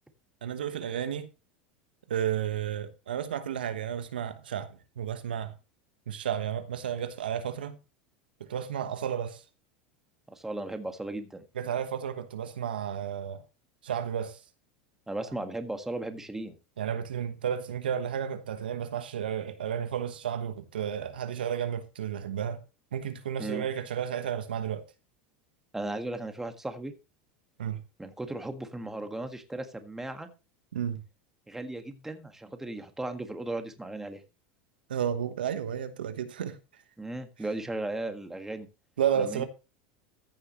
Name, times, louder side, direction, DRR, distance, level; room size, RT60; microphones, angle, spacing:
voice 1, 0.4-1.3 2.1-5.5 6.1-7.8 8.4-9.4 11.5-13.4 13.8-14.4 16.8-22.6 22.9-24.8 27.6-27.8 30.7-31.0 34.9-36.6 39.0-39.4, right 9 dB, 90° right, 1.2 m, -32 dB
voice 2, 10.3-11.4 15.1-16.5 23.4-23.7 25.7-26.9 28.0-30.3 31.5-34.2 37.0-38.7 39.2-39.5, right 2 dB, 10° right, 1.6 m, -36 dB
14.5 x 6.6 x 3.0 m
hypercardioid pair, 95°, 5 cm